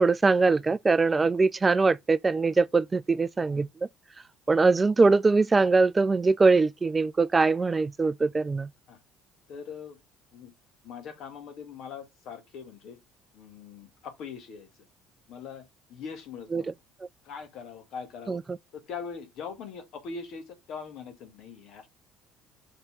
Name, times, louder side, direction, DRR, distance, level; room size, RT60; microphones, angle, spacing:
voice 1, 0.0-3.7 4.5-8.7 16.5-16.6 18.3-18.4, right 4 dB, 25° right, 0.3 m, -22 dB
voice 2, 9.5-10.0 10.3-10.5 10.8-13.0 13.3-14.7 15.3-16.7 17.2-18.4 18.7-21.9, left 6 dB, 55° left, 1.6 m, -41 dB
6.5 x 4.3 x 3.5 m
figure-of-eight pair, 55°, 0 cm